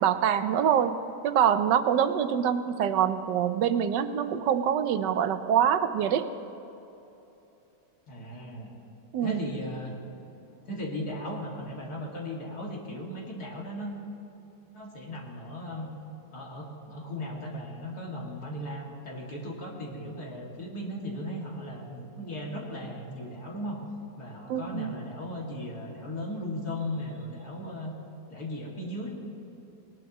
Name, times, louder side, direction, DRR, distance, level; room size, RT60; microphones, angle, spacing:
voice 1, 0.0-6.3 9.1-9.4 24.5-25.0, right 9 dB, 80° right, 10 dB, 1.3 m, -25 dB
voice 2, 8.1-8.7 9.2-10.0 10.6-13.9 14.7-15.9 16.3-23.8 24.2-27.9 28.3-29.1, left 1 dB, 60° left, -2 dB, 2.7 m, -37 dB
20.0 x 19.0 x 3.0 m, 2.9 s
omnidirectional pair, 1.9 m